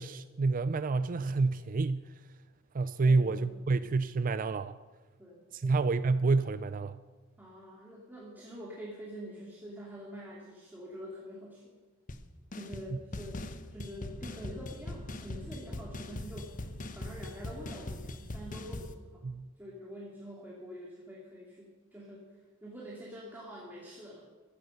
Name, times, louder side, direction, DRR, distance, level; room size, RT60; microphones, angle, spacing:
voice 1, 0.0-2.2 2.7-4.8 5.5-7.0 19.2-19.5, right 3 dB, 45° right, 13 dB, 0.4 m, -29 dB
voice 2, 3.0-3.5 5.2-5.7 7.4-11.7 12.5-16.7 16.9-19.2 19.6-22.3 22.6-24.2, equal, 10° right, -5 dB, 2.7 m, -46 dB
sound 1, 12.1-12.2 12.5-12.9 13.1-18.9, left 1 dB, 40° left, 1.0 m, -41 dB
14.5 x 14.0 x 6.6 m, 1.3 s
head